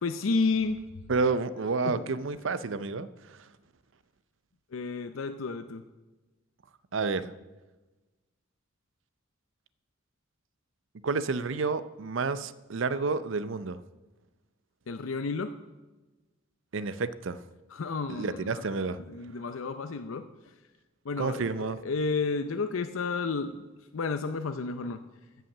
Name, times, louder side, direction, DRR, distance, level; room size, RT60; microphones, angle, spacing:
voice 1, 0.0-1.0 1.8-2.1 4.7-5.8 14.9-15.5 17.7-18.7 19.1-20.3 21.0-23.6 23.9-25.0, left 4 dB, 90° left, 9 dB, 0.6 m, -31 dB
voice 2, 1.1-3.4 6.9-7.3 11.0-13.8 16.7-17.4 18.1-19.0 21.2-21.8, right 4 dB, 65° right, 15 dB, 0.6 m, -30 dB
14.5 x 5.7 x 7.1 m, 1.2 s
head